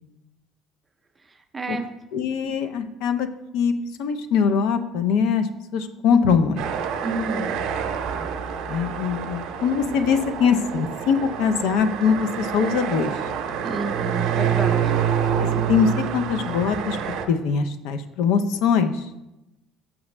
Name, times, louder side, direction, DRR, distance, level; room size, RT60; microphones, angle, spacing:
voice 1, 1.5-1.9 7.0-7.6 13.6-15.0, right 2 dB, 15° right, 5 dB, 0.5 m, -30 dB
voice 2, 2.1-3.3 3.5-3.7 4.0-5.5 5.7-6.6 8.7-13.2 15.4-19.0, left 6 dB, 75° left, 9 dB, 0.5 m, -22 dB
sound 1, 6.6-17.2, right 8 dB, 65° right, 0.6 m, -27 dB
6.0 x 6.0 x 3.2 m, 0.94 s
cardioid pair, 160°, 0 cm